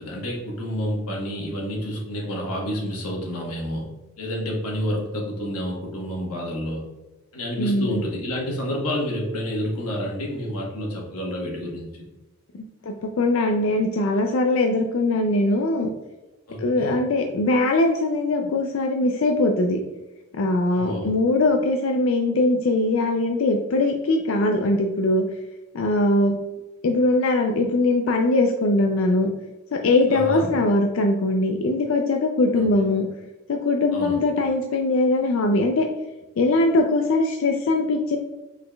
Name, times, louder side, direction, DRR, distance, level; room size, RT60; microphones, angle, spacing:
voice 1, 0.0-3.9 4.2-6.8 7.3-11.9 16.5-16.9 20.7-21.1 30.1-30.5 32.4-32.7 33.9-34.2, equal, 85° left, -2 dB, 1.2 m, -29 dB
voice 2, 7.6-8.0 12.9-15.9 16.6-19.8 20.4-25.2 25.7-26.4 26.8-29.3 29.7-33.0 33.5-35.9 36.4-38.2, left 2 dB, 65° left, 3 dB, 0.4 m, -21 dB
4.9 x 4.1 x 2.2 m, 1.1 s
head